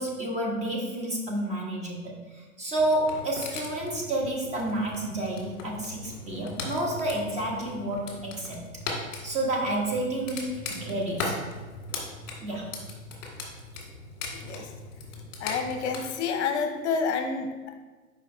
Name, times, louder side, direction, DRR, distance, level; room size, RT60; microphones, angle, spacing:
voice 1, 0.0-8.6 9.0-11.4 12.4-12.7, right 1 dB, 15° right, -2 dB, 1.2 m, -30 dB
sound 1, 2.8-16.0, left 3 dB, 35° left, 1.9 m, -39 dB
voice 2, 15.4-17.7, left 5 dB, 55° left, 5 dB, 0.8 m, -29 dB
5.1 x 5.0 x 3.9 m, 1.3 s
hypercardioid pair, 125°, 42 cm